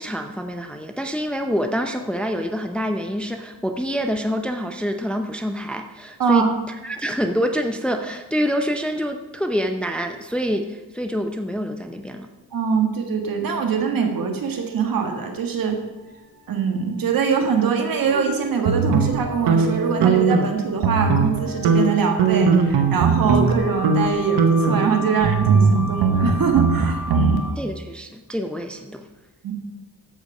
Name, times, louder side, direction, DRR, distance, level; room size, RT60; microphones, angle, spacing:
voice 1, 0.0-12.3 27.6-29.1, equal, 5° left, 5 dB, 0.6 m, -26 dB
voice 2, 6.2-6.5 12.5-15.8 16.5-27.5 29.4-29.5, right 6 dB, 60° right, 3 dB, 1.7 m, -23 dB
sound 1, 14.4-27.5, left 1 dB, 45° left, 3.0 m, -36 dB
sound 2, 18.6-20.5 20.8-21.4 21.6-23.5 23.8-24.1 24.4-27.4, right 5 dB, 90° right, 1.1 m, -19 dB
14.0 x 5.1 x 5.5 m, 1.1 s
wide cardioid pair, 130°, 38 cm